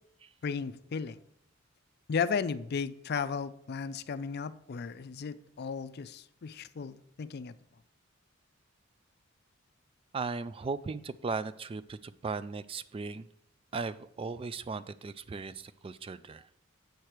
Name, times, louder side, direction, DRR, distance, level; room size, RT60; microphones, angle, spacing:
voice 1, 0.4-1.2 2.1-7.5, left 5 dB, 55° left, 14 dB, 0.4 m, -35 dB
voice 2, 10.1-13.3 13.7-16.5, right 4 dB, 25° right, 14 dB, 0.3 m, -37 dB
8.1 x 6.6 x 4.5 m, 0.69 s
head